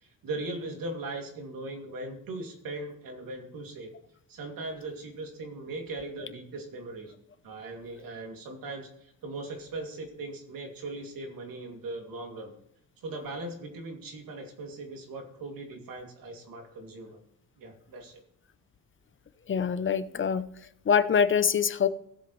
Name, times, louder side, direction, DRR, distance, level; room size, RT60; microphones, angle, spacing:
voice 1, 0.0-3.9 4.3-7.1 7.4-12.5 13.0-17.2 17.6-18.2, right 2 dB, 80° right, 3 dB, 2.6 m, -39 dB
voice 2, 19.5-21.9, left 7 dB, 35° left, 12 dB, 0.6 m, -25 dB
16.5 x 7.7 x 3.1 m, 0.73 s
cardioid pair, 125°, 34 cm